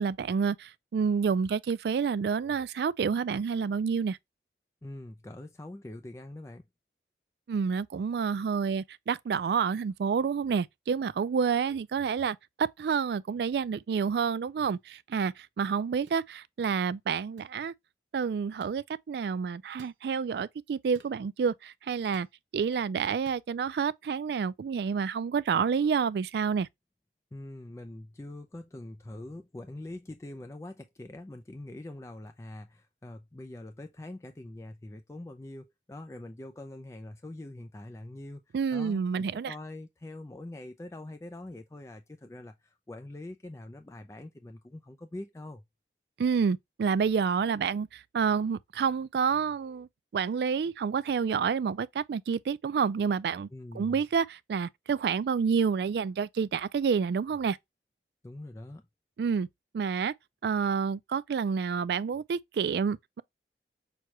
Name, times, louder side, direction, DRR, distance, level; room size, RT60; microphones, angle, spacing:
voice 1, 0.0-4.2 7.5-17.7 18.1-22.3 22.5-26.7 38.5-39.5 46.2-53.5 53.7-57.6 59.2-59.5 59.7-60.1 60.4-63.2, right 6 dB, 65° right, 0.3 m, -29 dB
voice 2, 4.8-6.6 27.3-45.6 53.5-54.0 58.2-58.8, left 1 dB, 15° left, 0.4 m, -44 dB
sound 1, 14.7-14.8 16.1-16.3 17.4-17.6 18.6-18.8 19.8-20.0 20.9-21.2 22.1-22.4 23.3-23.5, right 4 dB, 85° right, 0.7 m, -56 dB
6.2 x 2.2 x 2.9 m
head